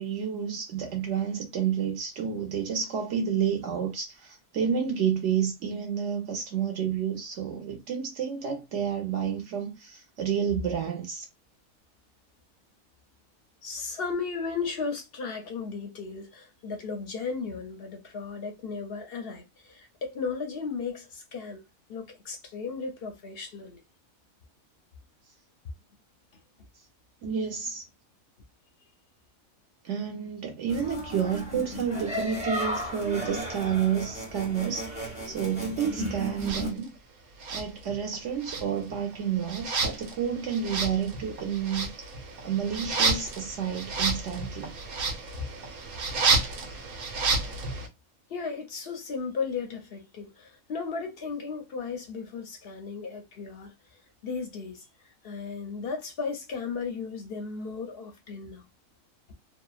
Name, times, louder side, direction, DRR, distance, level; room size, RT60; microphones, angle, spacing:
voice 1, 0.0-11.3 27.2-27.8 29.8-36.9 37.5-41.9 42.4-44.8, right 8 dB, 65° right, 1.0 m, -30 dB
voice 2, 13.6-21.6 21.9-23.8 45.3-45.4 48.3-53.7 54.2-54.9 55.2-58.7, left 5 dB, 60° left, 0.6 m, -35 dB
sound 1, 30.7-36.7, equal, 10° right, 0.5 m, -35 dB
sound 2, 36.4-36.7 37.4-38.2 38.4-47.9, right 4 dB, 90° right, 1.1 m, -30 dB
2.7 x 2.0 x 2.3 m
omnidirectional pair, 1.5 m